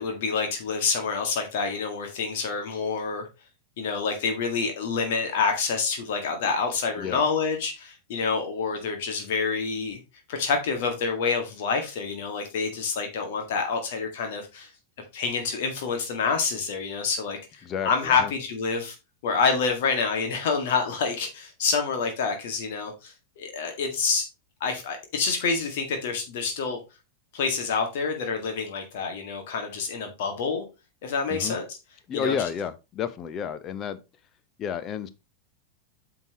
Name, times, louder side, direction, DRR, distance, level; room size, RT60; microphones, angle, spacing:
voice 1, 0.0-3.3 3.8-10.0 10.3-14.7 15.1-19.0 19.2-24.3 24.6-26.8 27.3-30.6 31.0-31.6 32.1-32.4, left 5 dB, 55° left, 1.9 m, -27 dB
voice 2, 17.6-18.3 31.3-31.6 32.1-34.0 34.6-35.1, left 7 dB, 30° left, 0.9 m, -31 dB
9.2 x 5.9 x 3.0 m
figure-of-eight pair, 90°, 0 cm